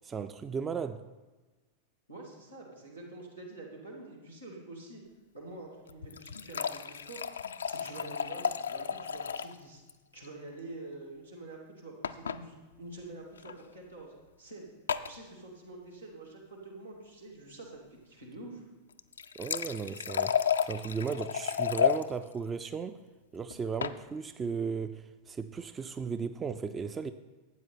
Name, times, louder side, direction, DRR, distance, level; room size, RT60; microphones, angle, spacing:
voice 1, 0.0-1.1 19.4-23.0 23.3-27.1, right 6 dB, 20° right, 0.4 m, -36 dB
voice 2, 2.1-5.0 5.3-7.2 7.6-9.8 10.1-14.7 15.0-18.6, right 2 dB, 85° right, 2.6 m, -47 dB
sound 1, 5.9-9.6 9.9-10.0 10.2-10.3 12.0-12.4 13.4-13.5 14.9-15.2 18.9-22.0 23.5-24.0, left 8 dB, 70° left, 0.4 m, -32 dB
12.5 x 8.9 x 4.2 m
figure-of-eight pair, 90°, 0 cm